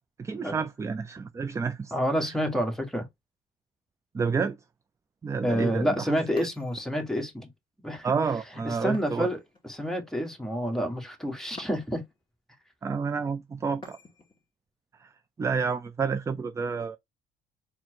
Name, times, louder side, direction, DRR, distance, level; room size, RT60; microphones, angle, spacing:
voice 1, 0.2-1.9 4.1-4.6 5.2-6.2 8.0-9.3 12.8-14.0 15.0-15.1 15.4-17.0, right 5 dB, 15° right, 0.3 m, -29 dB
voice 2, 1.9-3.1 5.4-7.5 7.8-8.1 8.6-9.4 9.6-12.0, equal, ahead, 1.2 m, -28 dB
sound 1, 6.4-7.3 8.9-9.9 11.6-12.2 13.8-14.4, left 2 dB, 30° left, 2.2 m, -50 dB
4.2 x 2.1 x 4.4 m
cardioid pair, 110°, 17 cm